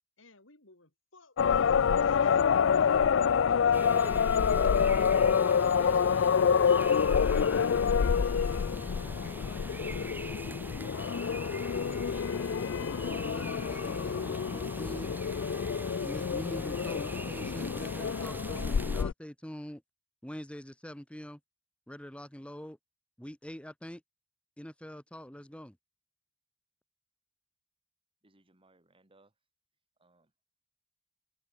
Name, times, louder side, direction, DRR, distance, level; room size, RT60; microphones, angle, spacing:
voice 1, 0.2-7.7, left 3 dB, 90° left, 4.2 m, -61 dB
Call to Prayer Blue Mosque Istanbul, 1.4-19.1, left 7 dB, 70° left, 0.4 m, -27 dB
sound 1, 3.7-19.0, right 1 dB, 10° right, 1.1 m, -43 dB
voice 2, 13.0-15.1 16.0-19.8 20.2-21.4 21.9-22.8 23.2-24.0 24.6-25.8, equal, 5° left, 1.4 m, -44 dB
voice 3, 28.2-29.3 30.0-30.4, right 2 dB, 30° right, 2.1 m, -65 dB
head